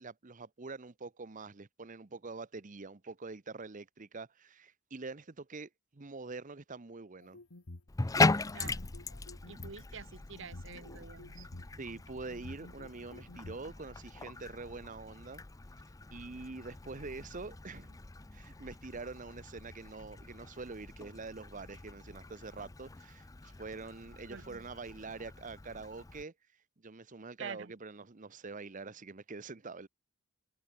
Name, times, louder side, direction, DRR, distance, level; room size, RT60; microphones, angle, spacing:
voice 1, 0.0-7.4 11.8-15.4 16.1-18.0 18.3-26.3 26.8-29.9, right 3 dB, 35° right, 0.8 m, -45 dB
sound 1, 7.2-7.9 8.4-9.8 10.4-11.7 12.3-13.6, left 2 dB, 85° left, 1.7 m, -49 dB
Bathtub (filling or washing), 7.9-26.2, left 3 dB, 15° left, 0.5 m, -39 dB
voice 2, 8.5-8.8 9.5-11.5 24.3-24.7 27.4-27.7, right 6 dB, 60° right, 1.0 m, -47 dB
head